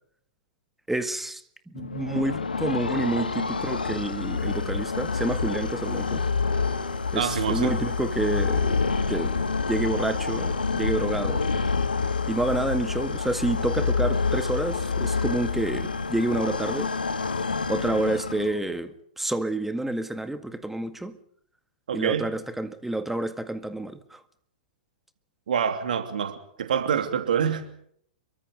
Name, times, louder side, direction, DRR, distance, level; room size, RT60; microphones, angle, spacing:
voice 1, 0.9-1.4 1.7-6.2 7.1-8.8 9.1-9.3 9.7-11.5 12.3-16.9 17.7-21.2 21.9-24.2, right 1 dB, 5° right, 1.9 m, -29 dB
sound 1, 1.7-18.7, left 4 dB, 85° left, 1.8 m, -27 dB
voice 2, 7.1-7.7 21.9-22.3 25.5-27.7, right 8 dB, 70° right, 2.9 m, -26 dB
27.5 x 23.5 x 5.3 m
figure-of-eight pair, 105°, 5 cm